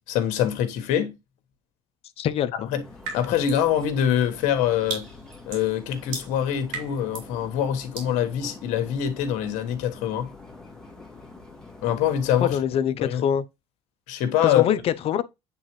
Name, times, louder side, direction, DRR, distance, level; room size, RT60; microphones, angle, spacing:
voice 1, 0.1-1.1 2.7-2.8 3.1-5.0 5.5-10.3 11.8-12.6 13.0-13.2 14.1-14.6, left 10 dB, 70° left, 1.3 m, -24 dB
voice 2, 2.2-2.5 12.4-13.4 14.4-15.2, left 9 dB, 50° left, 0.6 m, -24 dB
sound 1, 2.8-12.6, left 3 dB, 5° left, 1.8 m, -45 dB
sound 2, 3.0-3.7 4.1-7.4 7.9-8.2, right 5 dB, 80° right, 3.3 m, -37 dB
8.5 x 3.7 x 3.1 m
supercardioid pair, 105°, 13 cm